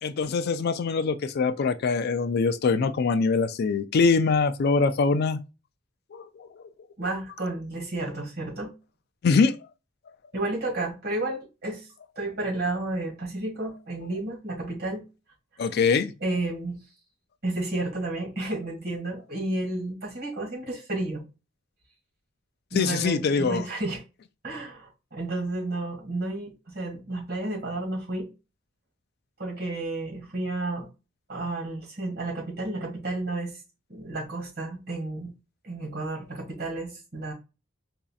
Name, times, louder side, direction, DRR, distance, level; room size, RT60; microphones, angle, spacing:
voice 1, 0.0-5.4 6.1-6.5 9.2-9.5 15.6-16.1 22.7-23.6, left 4 dB, 55° left, 0.4 m, -23 dB
voice 2, 7.0-8.7 10.3-11.9 12.2-15.0 16.2-16.8 17.4-21.2 22.7-24.0 24.4-28.3 29.4-30.9 31.3-33.6 33.9-35.3 35.6-37.3, right 2 dB, 55° right, 1.9 m, -31 dB
4.9 x 2.7 x 2.3 m
head